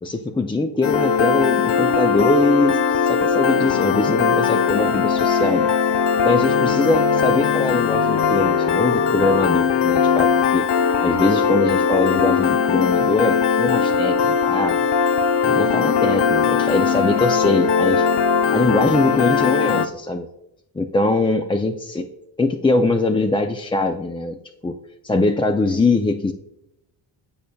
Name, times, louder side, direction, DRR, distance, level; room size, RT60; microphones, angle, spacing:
voice 1, 0.0-5.7 6.2-10.7 11.0-14.8 15.4-18.1 18.5-20.3 20.7-22.1 22.4-24.8 25.0-26.3, left 2 dB, 10° left, 6 dB, 0.4 m, -22 dB
Piano, 0.8-19.9, left 6 dB, 55° left, 0.7 m, -19 dB
15.5 x 5.2 x 2.3 m, 0.84 s
cardioid pair, 80°, 49 cm